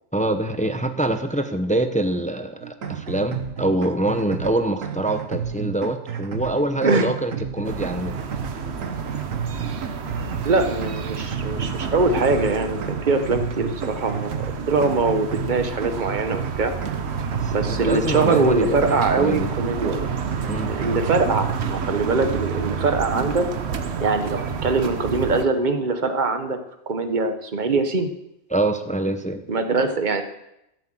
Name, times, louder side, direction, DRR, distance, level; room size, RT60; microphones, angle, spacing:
voice 1, 0.1-8.2 17.4-19.5 20.5-20.7 28.5-29.5, right 1 dB, 10° left, 8 dB, 0.6 m, -25 dB
sound 1, 2.6-21.9, right 7 dB, 85° right, 1.4 m, -32 dB
sound 2, 7.6-25.5, right 5 dB, 60° right, 1.1 m, -30 dB
voice 2, 10.4-16.7 17.5-20.1 20.7-23.5 24.0-26.6 26.9-28.1 29.5-30.2, right 3 dB, 40° right, 8 dB, 1.2 m, -22 dB
13.5 x 7.6 x 7.7 m, 0.85 s
omnidirectional pair, 1.4 m